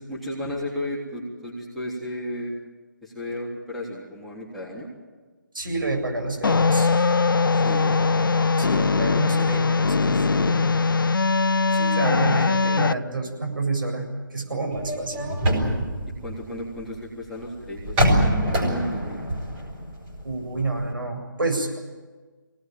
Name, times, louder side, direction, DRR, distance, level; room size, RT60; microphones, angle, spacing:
voice 1, 0.1-2.5 3.0-4.9 7.5-8.1 9.1-9.5 16.2-19.2, left 1 dB, ahead, -8 dB, 3.5 m, -34 dB
voice 2, 5.5-6.9 8.6-10.7 11.7-15.4 15.7-15.9 20.2-21.8, right 2 dB, 80° right, 3 dB, 7.8 m, -29 dB
sound 1, 6.4-12.9, left 4 dB, 80° left, 0.7 m, -21 dB
sound 2, 14.7-17.0 17.8-20.6 20.9-21.0, equal, 20° right, 5.2 m, -24 dB
24.0 x 18.5 x 9.2 m, 1.3 s
figure-of-eight pair, 160°, 11 cm